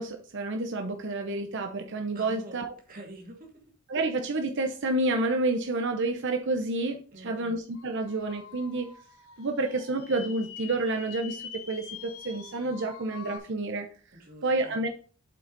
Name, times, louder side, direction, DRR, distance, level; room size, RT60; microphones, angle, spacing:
voice 1, 0.0-2.7 3.9-8.9 9.4-13.9 14.4-14.9, right 2 dB, 55° right, 4 dB, 0.8 m, -29 dB
voice 2, 2.1-3.5 7.1-7.6 14.1-14.8, right 1 dB, 40° right, 1 dB, 2.4 m, -46 dB
sound 1, 7.7-13.4, left 7 dB, 90° left, 1.3 m, -45 dB
7.9 x 5.4 x 4.1 m, 0.39 s
head